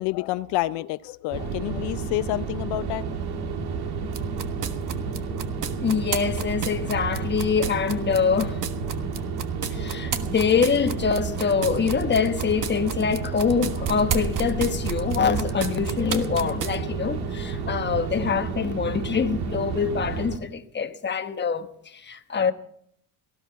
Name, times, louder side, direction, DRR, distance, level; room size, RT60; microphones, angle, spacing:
voice 1, 0.0-3.0, left 17 dB, 90° left, 0.5 m, -28 dB
sound 1, 1.3-20.4, right 5 dB, 75° right, 2.1 m, -31 dB
sound 2, 4.1-16.8, right 7 dB, 50° right, 1.4 m, -32 dB
voice 2, 5.8-8.6 9.6-22.5, left 6 dB, 25° left, 1.2 m, -25 dB
18.5 x 14.0 x 4.7 m
cardioid pair, 110°, 39 cm